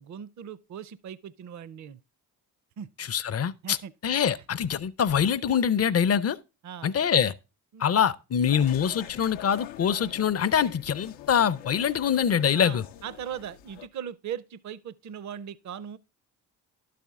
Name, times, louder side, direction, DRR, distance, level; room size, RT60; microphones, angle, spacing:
voice 1, 0.0-2.0 2.8-2.9 3.6-3.9 4.3-4.4 6.6-6.9 7.7-7.9 8.5-8.6 12.5-16.0, right 9 dB, 40° right, 0.5 m, -39 dB
voice 2, 3.1-3.8 4.0-6.4 6.8-7.3 7.8-12.8, left 8 dB, 35° left, 0.5 m, -24 dB
sound 1, 8.4-13.9, left 12 dB, 85° left, 0.6 m, -45 dB
11.5 x 4.3 x 3.6 m
supercardioid pair, 50°, 46 cm